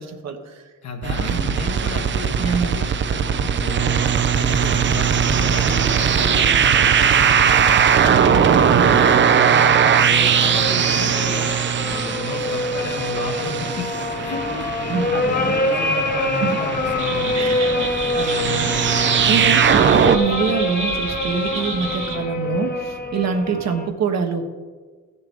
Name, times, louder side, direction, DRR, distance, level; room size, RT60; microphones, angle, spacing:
voice 1, 0.0-0.6 1.2-1.5 2.4-2.8 8.7-9.1 14.9-15.1 15.7-15.9 16.4-16.6 17.3-17.9 18.1-18.7 19.3-24.4, right 6 dB, 60° right, 5 dB, 1.3 m, -25 dB
voice 2, 0.8-4.0 4.3-7.8 8.2-11.5 11.8-13.9 14.2-14.7 15.1-17.6, left 5 dB, 65° left, 3 dB, 1.6 m, -33 dB
sound 1, 1.0-20.2, right 7 dB, 40° right, 0.6 m, -19 dB
sound 2, 9.5-23.9, left 2 dB, 30° left, 1.1 m, -25 dB
sound 3, 17.0-22.2, right 4 dB, 75° right, 2.3 m, -30 dB
15.5 x 6.7 x 3.7 m, 1.4 s
cardioid pair, 90°, 30 cm